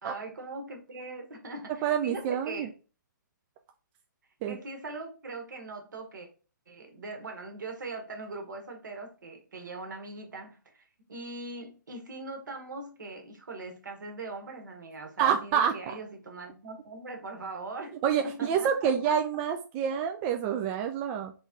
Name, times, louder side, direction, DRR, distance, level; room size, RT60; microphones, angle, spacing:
voice 1, 0.0-2.7 4.5-6.3 6.7-18.0 18.2-19.1, right 3 dB, 65° right, 1.4 m, -41 dB
voice 2, 1.8-2.7 4.4-4.6 15.2-15.7 18.0-21.3, right 8 dB, 20° right, 0.3 m, -27 dB
3.7 x 3.0 x 3.6 m
figure-of-eight pair, 130°, 11 cm